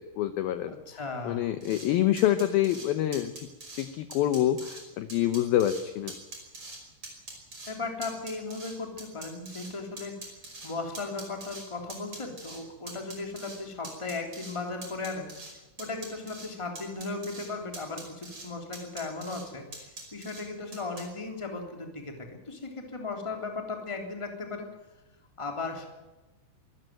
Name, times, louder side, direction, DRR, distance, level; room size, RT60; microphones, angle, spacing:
voice 1, 0.0-0.7 1.2-3.5 3.8-6.2, left 12 dB, 80° left, 10 dB, 2.1 m, -26 dB
voice 2, 0.7-1.4 7.7-10.2 10.6-15.3 15.8-24.7 25.4-25.8, left 3 dB, 10° left, 3 dB, 2.2 m, -36 dB
sound 1, 1.6-1.9 2.2-2.9 3.1-4.8 5.1-5.8 6.1-6.8 7.0-7.7 8.0-9.7 10.0-11.6 11.9-12.6 12.9-13.6 13.8-14.5 14.8-15.5 15.8-16.5 16.8-17.5 17.7-18.5 18.7-19.4 19.7-20.4 20.7-21.0, right 2 dB, 25° right, 5.9 m, -43 dB
24.5 x 14.0 x 9.2 m, 1.1 s
omnidirectional pair, 5.5 m